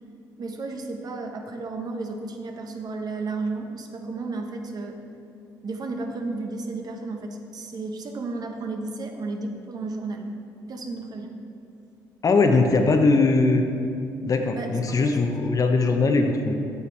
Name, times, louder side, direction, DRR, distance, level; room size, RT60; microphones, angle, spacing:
voice 1, 0.4-5.0 5.6-10.3 10.7-11.3 14.5-15.2, right 3 dB, 50° right, 4 dB, 1.0 m, -33 dB
voice 2, 12.2-13.6 14.2-16.5, left 3 dB, 45° left, 5 dB, 0.9 m, -20 dB
8.6 x 6.9 x 4.6 m, 2.5 s
supercardioid pair, 65°, 8 cm